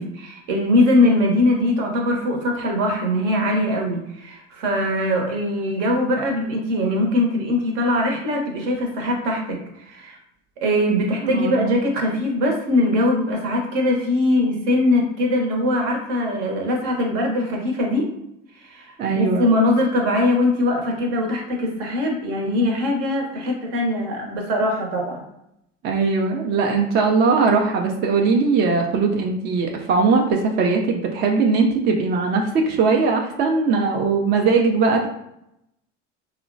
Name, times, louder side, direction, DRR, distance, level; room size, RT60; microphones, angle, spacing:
voice 1, 0.0-9.6 9.9-10.2 10.6-18.1 18.6-25.2, left 1 dB, 60° right, 1 dB, 0.9 m, -21 dB
voice 2, 11.2-11.8 19.0-19.5 25.8-35.1, right 4 dB, 30° right, 2 dB, 0.3 m, -20 dB
2.8 x 2.1 x 2.5 m, 0.81 s
hypercardioid pair, 80°, 37 cm